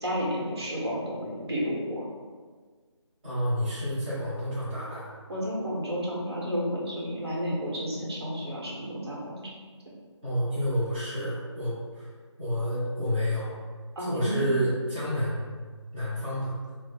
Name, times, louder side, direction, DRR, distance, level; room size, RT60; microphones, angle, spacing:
voice 1, 0.0-2.1 5.3-9.5 13.9-14.4, equal, 55° right, -5 dB, 1.1 m, -31 dB
voice 2, 3.2-5.1 10.2-12.1 12.4-13.5 14.0-15.5 15.9-16.6, equal, 25° right, -12 dB, 0.8 m, -29 dB
3.6 x 2.0 x 3.6 m, 1.5 s
figure-of-eight pair, 160°, 16 cm